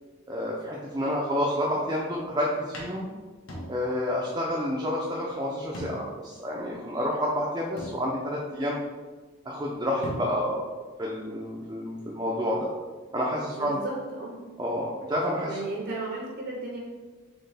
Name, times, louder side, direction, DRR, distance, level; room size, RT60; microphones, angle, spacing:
voice 1, 0.3-3.1 3.7-8.8 9.4-10.6 11.0-12.7 13.1-13.8 14.6-15.6, equal, 20° right, -4 dB, 0.4 m, -29 dB
sound 1, 2.7-4.2 4.4-4.5 5.7-6.3 6.7-6.8 7.8-8.5 9.7-9.8 10.0-10.7, equal, 75° left, 1.2 m, -39 dB
voice 2, 13.5-14.4 15.5-16.8, right 2 dB, 70° right, -3 dB, 0.8 m, -34 dB
4.4 x 3.6 x 3.3 m, 1.3 s
head